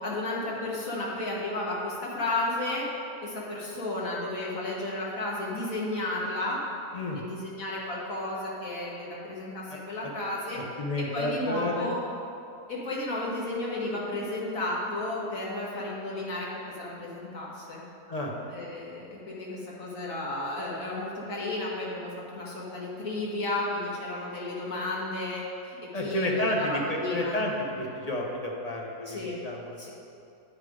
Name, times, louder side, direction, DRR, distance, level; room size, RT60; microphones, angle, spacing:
voice 1, 0.0-2.9 3.2-6.6 7.1-10.6 11.0-12.0 12.7-17.8 18.5-27.4 29.1-29.4 29.8-29.9, left 2 dB, 60° left, -5 dB, 2.0 m, -33 dB
voice 2, 10.8-11.9 18.1-18.3 25.9-27.5 27.8-29.8, left 1 dB, 30° left, -1 dB, 0.8 m, -30 dB
8.9 x 4.9 x 5.0 m, 2.7 s
omnidirectional pair, 1.7 m